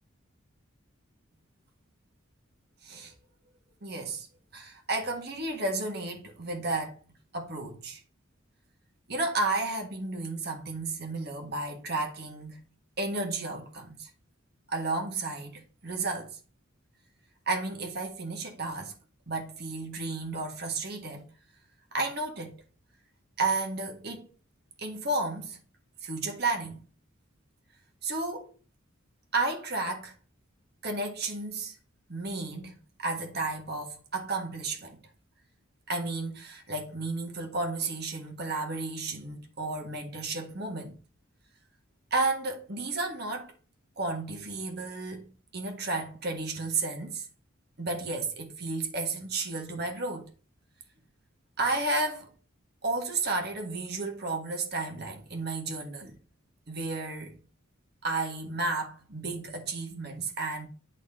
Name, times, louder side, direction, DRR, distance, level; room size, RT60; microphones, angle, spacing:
voice 1, 2.8-3.1 3.8-4.3 4.5-7.0 7.3-8.0 9.1-12.6 13.0-14.1 14.7-16.4 17.5-18.9 19.3-21.3 21.9-22.6 23.4-24.3 24.8-25.6 26.0-26.8 28.0-28.5 29.3-30.1 30.8-31.8 32.1-35.0 35.9-41.0 42.1-43.5 44.0-47.3 47.8-50.3 51.6-52.3 52.8-56.2 56.7-57.4 58.0-60.7, right 3 dB, 50° right, 1.7 m, -32 dB
9.3 x 4.2 x 3.7 m
head